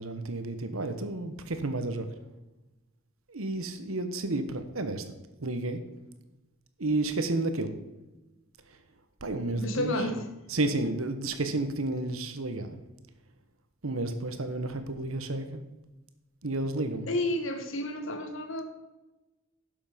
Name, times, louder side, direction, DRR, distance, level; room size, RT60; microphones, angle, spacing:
voice 1, 0.0-2.1 3.3-5.0 5.4-5.8 6.8-7.7 9.2-9.9 10.5-12.8 13.8-15.6 16.4-17.1, right 2 dB, 80° right, 8 dB, 1.2 m, -31 dB
voice 2, 9.5-10.3 17.1-18.6, left 1 dB, 70° left, 6 dB, 1.5 m, -31 dB
11.0 x 7.1 x 5.1 m, 1.0 s
head